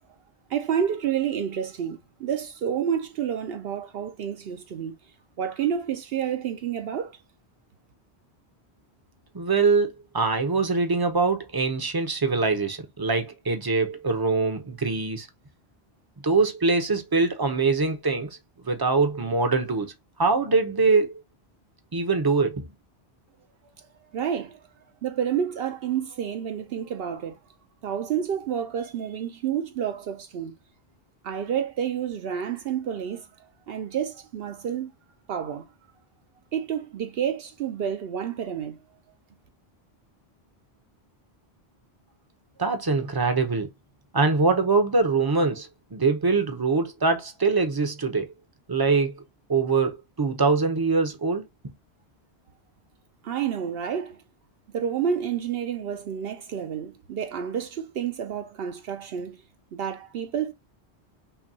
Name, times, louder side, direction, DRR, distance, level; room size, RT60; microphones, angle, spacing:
voice 1, 0.5-4.9 5.4-7.1 24.1-24.6 25.0-27.4 27.8-30.5 31.2-33.3 33.7-34.9 35.3-35.7 36.5-38.8 53.2-54.2 54.7-59.4 59.7-60.5, right 8 dB, 65° right, 0.7 m, -29 dB
voice 2, 9.3-15.3 16.2-18.3 18.6-19.9 20.2-21.1 21.9-22.7 42.6-43.7 44.1-48.3 48.7-49.1 49.5-51.4, right 4 dB, 25° right, 0.6 m, -23 dB
5.7 x 2.2 x 2.7 m
omnidirectional pair, 1.1 m